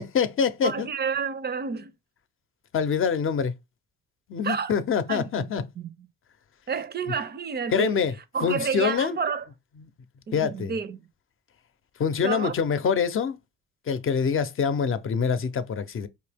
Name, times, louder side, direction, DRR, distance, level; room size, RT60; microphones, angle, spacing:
voice 1, 0.0-0.9 2.7-3.5 4.3-5.6 7.7-8.1 8.4-9.2 9.8-9.9 10.3-10.7 12.0-13.4 13.9-16.1, left 6 dB, 45° left, 0.6 m, -25 dB
voice 2, 0.6-1.9 4.4-4.7 5.1-5.5 5.8-5.9 6.7-8.0 8.3-9.4 10.3-11.0 12.2-12.5, right 6 dB, 35° right, 0.5 m, -29 dB
4.5 x 2.8 x 3.4 m
cardioid pair, 90°, 30 cm